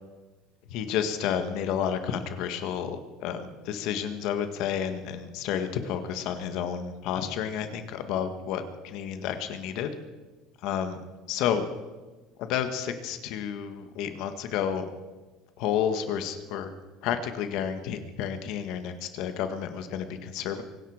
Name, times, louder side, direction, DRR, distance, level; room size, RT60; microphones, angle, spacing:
voice 1, 0.7-9.9 10.6-11.0 11.3-11.6 12.4-14.8 15.6-16.7 17.0-20.6, left 8 dB, 65° left, 8 dB, 1.8 m, -30 dB
24.5 x 11.0 x 5.1 m, 1.2 s
cardioid pair, 135°, 0 cm